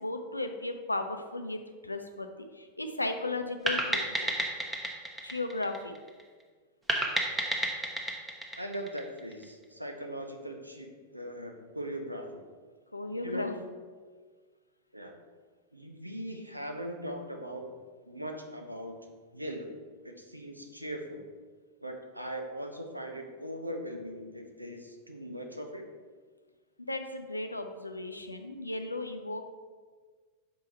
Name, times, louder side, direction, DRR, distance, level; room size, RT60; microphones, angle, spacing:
voice 1, 0.0-2.3 2.5-4.3 5.2-6.0 12.9-13.5 26.8-29.5, left 2 dB, 85° left, 6 dB, 0.5 m, -35 dB
sound 1, 3.7-6.2 6.9-9.4, right 1 dB, 10° right, 0.9 m, -31 dB
voice 2, 8.6-12.4 13.2-13.6 14.9-15.1 15.7-17.7 18.1-19.0 19.3-19.8 20.0-21.2 21.8-25.8, equal, 90° right, 3 dB, 0.7 m, -40 dB
6.3 x 4.8 x 4.1 m, 1.5 s
figure-of-eight pair, 90°, 0 cm